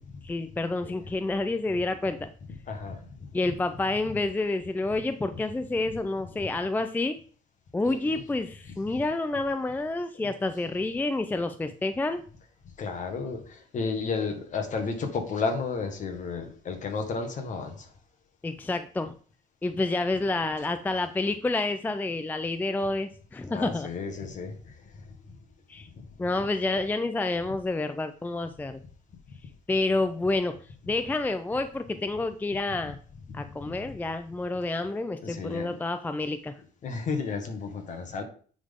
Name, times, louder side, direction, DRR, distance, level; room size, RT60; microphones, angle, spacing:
voice 1, 0.2-2.3 3.3-7.2 7.7-12.2 18.4-19.1 19.6-23.9 25.7-25.9 26.2-28.8 29.7-30.5 30.9-33.0 33.3-36.5, left 2 dB, 10° left, 9 dB, 0.4 m, -29 dB
voice 2, 2.7-3.0 5.3-5.4 7.9-8.1 10.2-10.3 12.8-13.4 13.7-17.8 23.5-24.5 33.3-33.8 35.2-35.8 36.8-38.2, left 4 dB, 45° left, 4 dB, 1.7 m, -32 dB
9.4 x 4.0 x 3.6 m, 0.43 s
cardioid pair, 110°, 17 cm